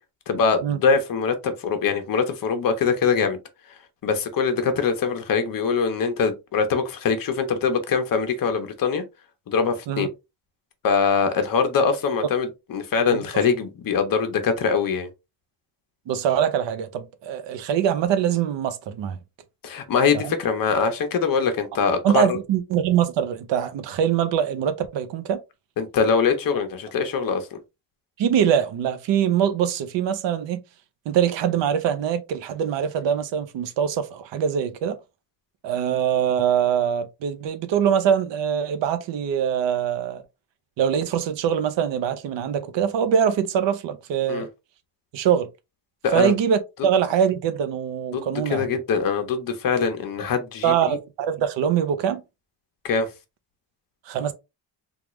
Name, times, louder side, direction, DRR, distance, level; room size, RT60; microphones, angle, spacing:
voice 1, 0.3-3.4 4.0-9.0 9.5-10.1 10.8-15.1 19.6-22.2 25.8-27.6 44.3-44.5 46.0-46.3 48.1-51.0 52.8-53.1, left 5 dB, 55° left, 0.8 m, -23 dB
voice 2, 16.1-19.2 20.2-20.3 22.0-25.4 28.2-30.6 31.1-35.0 35.6-40.2 40.8-44.5 45.1-45.5 46.1-48.7 50.6-52.2 54.1-54.3, right 8 dB, 85° right, 0.7 m, -23 dB
3.5 x 2.4 x 3.0 m
wide cardioid pair, 170°, 42 cm